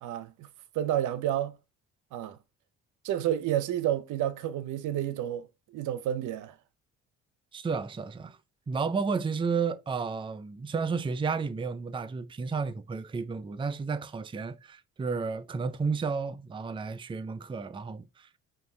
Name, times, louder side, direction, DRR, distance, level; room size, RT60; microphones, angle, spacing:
voice 1, 0.0-0.5 0.7-1.6 2.1-2.4 3.0-6.6, right 11 dB, 80° right, 0.6 m, -30 dB
voice 2, 7.5-8.4 8.7-18.3, right 5 dB, 15° right, 0.4 m, -32 dB
5.3 x 2.6 x 3.7 m
cardioid pair, 90°, 30 cm